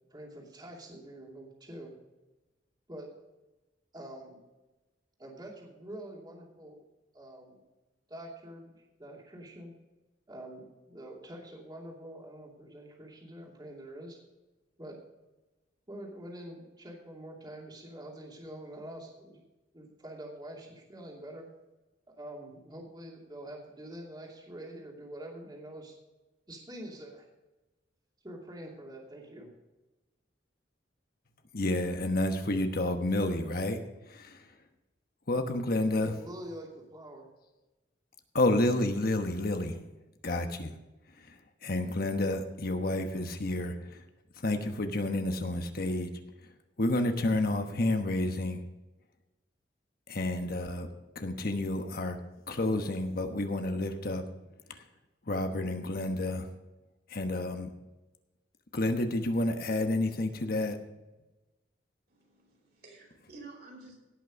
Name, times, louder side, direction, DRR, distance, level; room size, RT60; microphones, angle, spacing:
voice 1, 0.1-2.0 2.9-3.1 3.9-4.4 5.2-6.8 7.1-7.6 8.1-8.7 9.0-9.7 10.3-14.2 14.8-15.0 15.9-19.4 19.7-21.5 22.1-25.9 26.5-27.3 28.2-29.5 36.0-37.3, right 1 dB, 25° right, 2.7 m, -45 dB
voice 2, 31.5-33.8 34.1-34.5 35.3-36.1 38.3-39.8 40.2-40.7 41.2-44.0 44.4-46.1 46.4-46.5 46.8-48.6 50.1-50.9 51.1-52.2 52.5-54.2 54.7-54.8 55.3-56.5 57.1-57.7 58.7-60.8, left 1 dB, 55° left, 1.1 m, -30 dB
voice 3, 62.1-64.0, right 3 dB, 60° right, 4.9 m, -51 dB
17.5 x 6.2 x 5.3 m
head